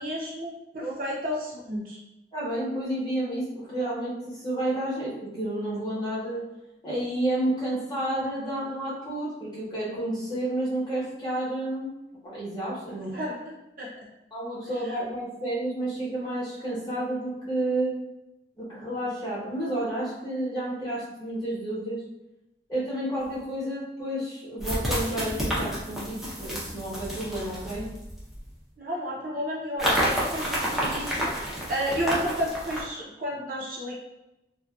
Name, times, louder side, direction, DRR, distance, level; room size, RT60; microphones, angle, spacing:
voice 1, 0.0-2.0 12.9-13.4 13.8-13.9 14.8-15.0 28.8-33.9, equal, 50° right, -4 dB, 0.6 m, -32 dB
voice 2, 2.3-6.5 6.8-11.9 12.2-13.1 14.3-18.0 18.6-22.0 22.7-27.9, right 1 dB, 20° left, -9 dB, 0.9 m, -30 dB
sound 1, 23.2-23.3 24.6-28.5 29.8-32.8, equal, ahead, 0.4 m, -30 dB
2.5 x 2.1 x 2.3 m, 0.93 s
head